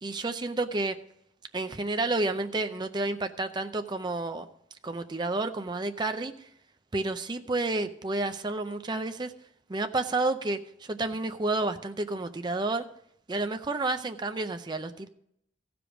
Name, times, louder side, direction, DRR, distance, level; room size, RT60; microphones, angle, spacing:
voice 1, 0.0-0.9 1.5-4.4 4.8-6.5 6.9-9.3 9.7-12.9 13.3-15.1, right 2 dB, 25° right, 8 dB, 0.5 m, -30 dB
15.0 x 5.1 x 6.0 m, 0.73 s
head